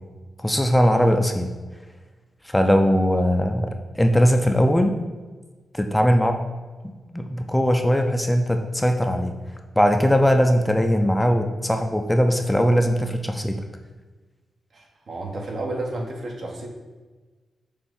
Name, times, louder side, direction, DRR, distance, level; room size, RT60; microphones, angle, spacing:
voice 1, 0.4-1.5 2.4-5.0 5.7-6.4 7.1-9.4 9.8-13.6, equal, 10° left, 5 dB, 0.5 m, -20 dB
voice 2, 14.7-16.7, right 2 dB, 65° right, 0 dB, 1.2 m, -31 dB
6.8 x 2.5 x 5.4 m, 1.3 s
cardioid pair, 85°, 0 cm